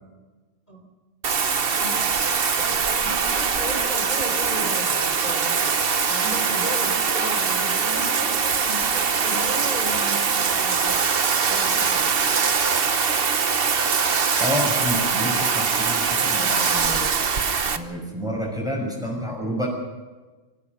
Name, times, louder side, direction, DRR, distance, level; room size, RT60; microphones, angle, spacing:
Bathtub (filling or washing), 1.2-17.8, right 6 dB, 50° right, 1.2 m, -22 dB
voice 1, 2.6-5.7 6.1-11.2 11.4-12.1, equal, 35° left, 4 dB, 4.0 m, -36 dB
voice 2, 14.4-17.2 17.7-19.7, equal, 5° right, -2 dB, 6.1 m, -29 dB
24.5 x 16.0 x 6.7 m, 1.3 s
omnidirectional pair, 1.3 m